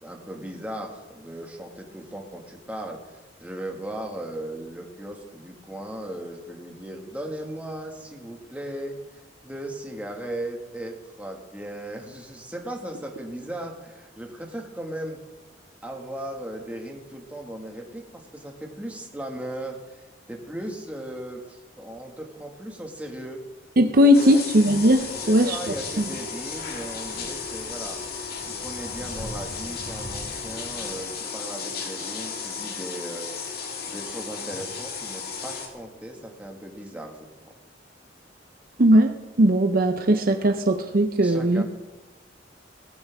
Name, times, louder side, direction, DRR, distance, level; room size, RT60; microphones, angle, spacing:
voice 1, 0.0-3.0 3.4-9.0 9.4-15.2 15.8-23.4 24.2-24.4 25.2-28.0 28.4-33.3 33.9-37.3 41.2-41.6, right 1 dB, 10° right, 1 dB, 1.9 m, -37 dB
voice 2, 23.8-25.6 26.0-26.1 38.8-39.1 39.4-41.6, equal, 50° right, 6 dB, 0.7 m, -18 dB
sound 1, 24.1-35.7, left 5 dB, 55° left, 2.0 m, -34 dB
sound 2, 24.6-31.0, equal, 40° left, 4.9 m, -44 dB
18.0 x 15.0 x 3.6 m, 1.2 s
head